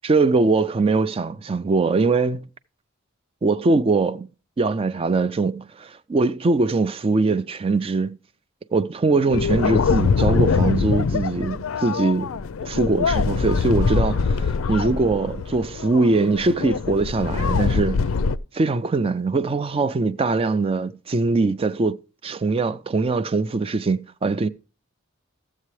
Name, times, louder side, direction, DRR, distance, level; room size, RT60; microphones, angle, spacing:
voice 1, 0.0-2.5 3.4-4.3 4.6-8.2 8.7-12.3 12.6-18.1 18.5-24.5, right 3 dB, 25° right, 0.4 m, -22 dB
sound 1, 9.3-18.4, left 5 dB, 75° left, 0.4 m, -23 dB
14.0 x 7.5 x 3.2 m
head